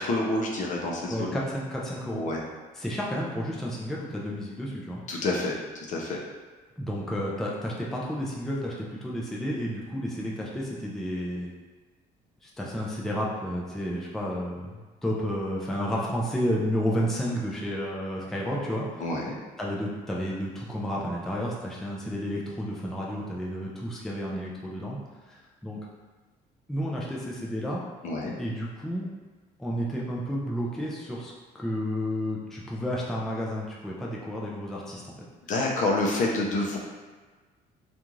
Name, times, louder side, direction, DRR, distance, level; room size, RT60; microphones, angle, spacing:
voice 1, 0.0-1.4 2.1-2.4 5.1-6.2 19.0-19.4 28.0-28.4 35.5-36.8, left 2 dB, 45° left, -1 dB, 0.6 m, -28 dB
voice 2, 1.1-2.2 2.7-5.0 6.8-11.5 12.4-19.0 19.6-25.0 25.3-25.8 26.7-27.8 28.4-29.1 29.6-35.1, equal, ahead, -4 dB, 0.4 m, -31 dB
2.5 x 2.3 x 3.0 m, 1.4 s
cardioid pair, 110°, 17 cm